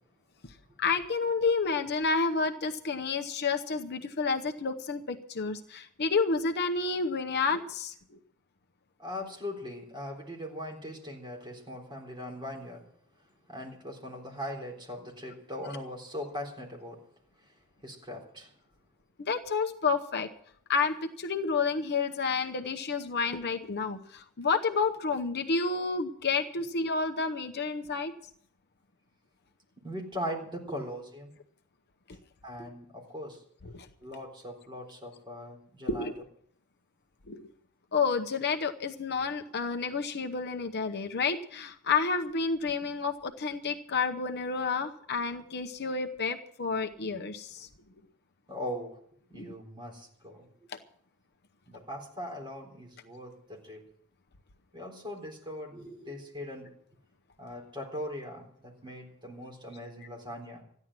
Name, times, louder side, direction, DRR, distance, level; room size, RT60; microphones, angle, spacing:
voice 1, 0.8-7.9 19.2-20.3 20.7-28.1 33.7-33.9 35.9-36.1 37.3-37.5 37.9-47.7 49.3-49.5 50.7-50.8, left 4 dB, 50° left, 6 dB, 0.8 m, -30 dB
voice 2, 9.0-12.8 13.5-17.0 17.8-18.5 29.8-31.3 32.4-33.4 34.0-36.1 48.5-49.0 49.3-50.5 51.7-53.8 54.7-56.7 57.4-60.6, equal, 20° right, 0 dB, 3.8 m, -40 dB
14.5 x 10.5 x 7.5 m, 0.65 s
head